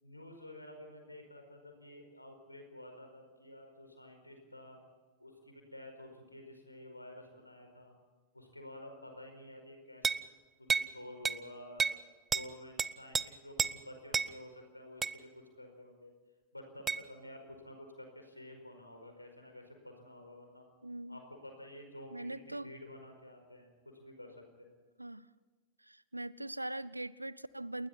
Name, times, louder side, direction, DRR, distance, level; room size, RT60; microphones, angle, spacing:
voice 1, 0.0-4.8 5.2-8.0 8.3-10.2 10.6-11.9 12.3-16.1 16.5-20.7 21.1-23.7 24.0-24.7, left 1 dB, 85° left, 4 dB, 5.0 m, -51 dB
sound 1, 10.0-10.3 10.7-10.9 11.3-11.4 11.8-12.0 12.3-12.5 12.8-13.2 13.6-13.8 14.1-14.3 15.0-15.2 16.9-17.0, right 5 dB, 15° right, 0.7 m, -31 dB
voice 2, 20.8-21.2 22.1-22.7 25.0-25.3 25.9-27.9, right 1 dB, 85° right, 21 dB, 0.7 m, -41 dB
29.5 x 20.5 x 4.3 m, 1.4 s
figure-of-eight pair, 90°, 0 cm